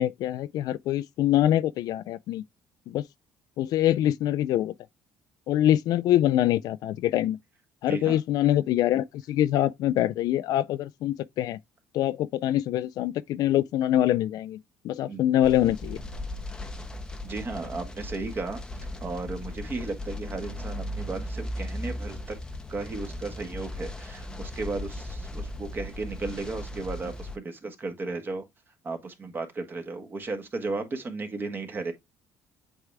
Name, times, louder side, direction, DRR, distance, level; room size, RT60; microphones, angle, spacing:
voice 1, 0.0-2.4 2.9-3.1 3.6-4.7 5.5-7.4 7.8-11.6 11.9-14.6 14.8-16.0, left 12 dB, 65° left, 0.4 m, -24 dB
voice 2, 7.9-8.2 15.1-15.2 17.2-18.6 19.0-22.4 22.7-28.4 28.8-31.9, right 3 dB, 30° right, 1.5 m, -34 dB
sound 1, 15.4-27.4, left 1 dB, 10° left, 0.8 m, -37 dB
8.1 x 3.5 x 3.3 m
cardioid pair, 115°, 7 cm